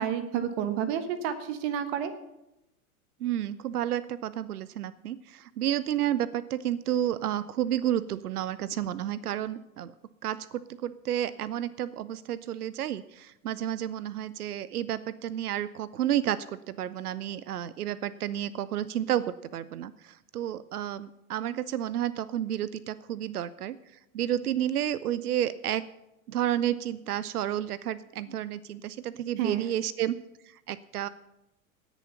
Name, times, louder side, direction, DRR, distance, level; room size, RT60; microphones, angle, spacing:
voice 1, 0.0-2.1 29.4-29.6, right 9 dB, 50° right, 10 dB, 1.3 m, -30 dB
voice 2, 3.2-9.9 10.2-23.8 24.1-25.9 26.3-30.2 30.4-31.1, right 11 dB, 85° right, 18 dB, 0.5 m, -31 dB
17.5 x 7.0 x 5.7 m, 0.91 s
hypercardioid pair, 95°, 44 cm